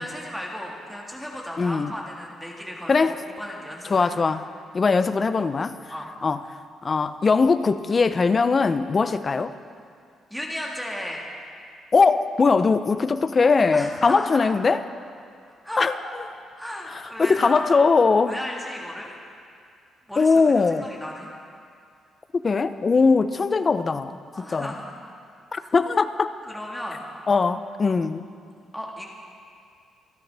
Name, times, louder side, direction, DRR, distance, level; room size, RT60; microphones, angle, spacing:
voice 1, 0.0-4.2 5.9-6.1 10.3-11.2 13.7-14.4 15.6-15.9 16.6-17.7 18.3-19.1 20.1-21.3 24.3-25.0 25.5-25.7 26.5-27.0 28.7-29.1, equal, ahead, -2 dB, 1.6 m, -35 dB
voice 2, 1.6-1.9 2.9-3.2 3.9-4.4 4.7-5.8 6.2-6.4 6.8-9.5 11.9-14.8 15.8-15.9 17.2-18.4 20.2-20.9 22.4-24.7 25.5-26.3 27.3-28.2, left 4 dB, 25° left, 11 dB, 0.4 m, -20 dB
26.5 x 10.5 x 3.4 m, 2.3 s
cardioid pair, 170°, 0 cm